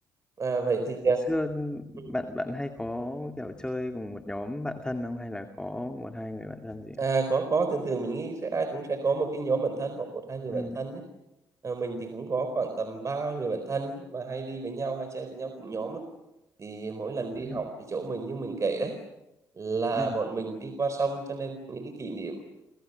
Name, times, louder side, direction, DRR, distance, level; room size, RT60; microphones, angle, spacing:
voice 1, 0.4-1.2 2.0-2.1 7.0-11.0 11.6-16.0 16.6-18.9 19.6-22.3, right 4 dB, 40° right, 7 dB, 4.3 m, -30 dB
voice 2, 1.1-7.0 10.5-10.8 17.3-17.7 19.9-20.1, left 1 dB, 10° left, 5 dB, 2.3 m, -34 dB
29.0 x 25.5 x 6.9 m, 0.92 s
supercardioid pair, 65°, 8 cm